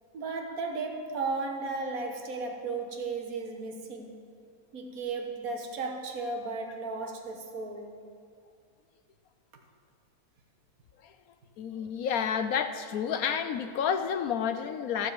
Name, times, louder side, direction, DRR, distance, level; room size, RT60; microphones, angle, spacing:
voice 1, 0.1-4.1 4.7-7.9, right 3 dB, 70° right, 3 dB, 1.7 m, -35 dB
voice 2, 11.6-15.1, left 7 dB, 75° left, 8 dB, 1.0 m, -30 dB
14.5 x 7.1 x 7.8 m, 2.3 s
omnidirectional pair, 1.6 m